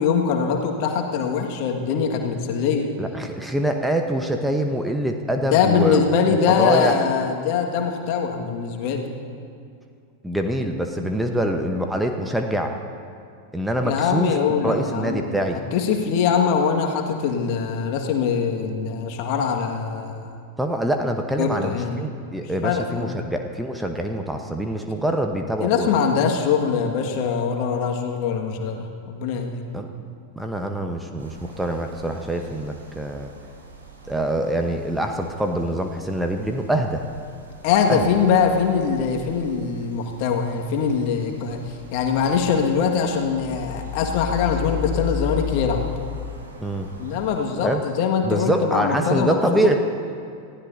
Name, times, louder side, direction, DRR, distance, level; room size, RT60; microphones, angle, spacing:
voice 1, 0.0-2.9 5.4-9.1 13.7-20.4 21.4-22.1 22.4-23.2 25.6-29.6 37.6-45.8 47.0-49.7, left 6 dB, 45° left, 2 dB, 1.9 m, -23 dB
voice 2, 3.0-6.0 6.3-6.9 10.2-12.7 13.5-14.3 14.6-15.6 20.6-25.9 29.7-29.9 30.4-33.3 34.1-37.0 37.9-38.0 46.6-46.9 47.6-47.8 48.2-49.7, right 1 dB, 5° right, 4 dB, 1.1 m, -25 dB
sound 1, 31.2-47.4, left 6 dB, 70° right, 3.7 m, -36 dB
28.5 x 15.5 x 2.8 m, 2.4 s
figure-of-eight pair, 90°, 0 cm